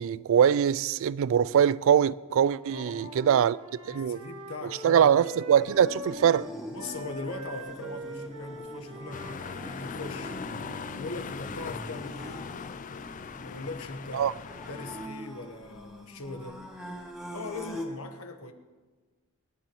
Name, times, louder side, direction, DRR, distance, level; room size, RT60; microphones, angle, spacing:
voice 1, 0.0-3.6 3.9-4.2 4.8-6.5 14.1-14.3, right 8 dB, 65° right, 0.3 m, -23 dB
Wind instrument woodwind instrument, 2.6-6.5 6.8-11.0, equal, 85° right, 1.3 m, -43 dB
voice 2, 2.7-3.4 3.9-5.3 6.7-10.4 11.0-12.5 13.4-16.6 17.3-18.5, left 3 dB, 75° left, 1.3 m, -40 dB
sound 1, 5.6-17.9, equal, ahead, 2.0 m, -43 dB
sound 2, 9.1-15.1, left 6 dB, 35° left, 0.4 m, -40 dB
28.5 x 10.5 x 3.1 m
head